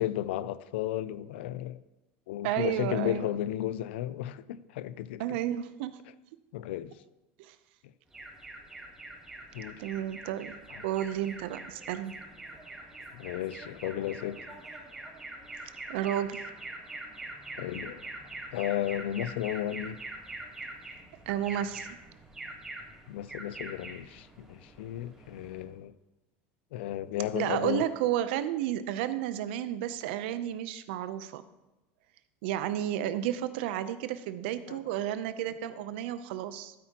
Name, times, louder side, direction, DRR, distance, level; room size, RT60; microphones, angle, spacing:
voice 1, 0.0-1.8 2.3-5.4 6.5-7.0 9.5-9.8 10.7-10.8 13.1-14.5 17.6-18.1 18.5-20.0 23.1-25.9 26.7-27.9 34.7-34.8, left 12 dB, 85° left, 0.4 m, -34 dB
voice 2, 2.4-3.3 5.2-6.0 7.4-7.5 9.8-10.5 10.8-12.2 15.9-16.4 21.3-22.0 27.3-31.4 32.4-36.7, right 11 dB, 75° right, 0.6 m, -32 dB
Alarm, 8.1-25.7, right 2 dB, 10° right, 2.9 m, -44 dB
13.0 x 8.3 x 2.9 m
supercardioid pair, 130°, 6 cm